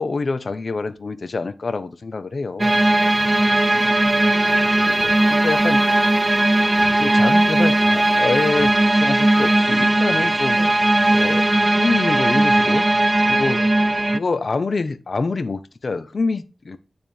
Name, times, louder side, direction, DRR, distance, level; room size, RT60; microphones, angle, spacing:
voice 1, 0.0-2.8 4.8-5.8 7.0-10.6 11.1-11.4 11.7-12.9 13.3-13.6 14.1-16.8, left 3 dB, 55° left, 0.8 m, -25 dB
sound 1, 2.6-14.2, right 1 dB, 25° right, 0.5 m, -18 dB
sound 2, 5.0-5.8 6.0-8.2 8.4-9.2, right 2 dB, 50° right, 3.4 m, -43 dB
voice 2, 13.3-13.6, right 3 dB, 80° right, 1.3 m, -42 dB
9.2 x 3.5 x 4.5 m
wide cardioid pair, 80°, 0 cm